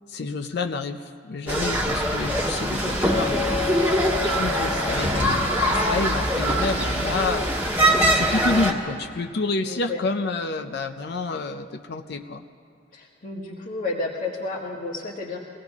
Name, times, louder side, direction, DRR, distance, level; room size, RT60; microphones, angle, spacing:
voice 1, 0.1-3.6 4.2-7.8 8.1-12.4, left 3 dB, 65° left, 6 dB, 0.6 m, -29 dB
sound 1, 1.5-8.7, right 1 dB, 10° right, 1.6 m, -23 dB
Chink clink, 3.1-7.3, left 7 dB, 85° left, 2.2 m, -33 dB
voice 2, 9.6-10.0 12.9-15.5, left 3 dB, 50° left, -3 dB, 1.4 m, -31 dB
23.0 x 17.0 x 3.6 m, 2.4 s
head